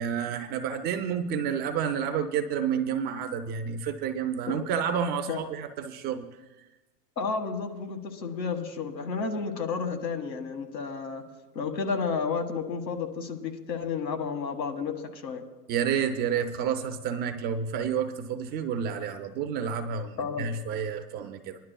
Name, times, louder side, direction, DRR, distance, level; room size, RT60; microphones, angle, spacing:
voice 1, 0.0-6.3 15.7-21.6, right 7 dB, 20° right, 7 dB, 0.4 m, -30 dB
voice 2, 7.2-11.2 11.5-15.4 20.2-20.5, left 5 dB, 90° left, 5 dB, 1.7 m, -31 dB
23.5 x 11.5 x 2.2 m, 1.1 s
hypercardioid pair, 120°, 49 cm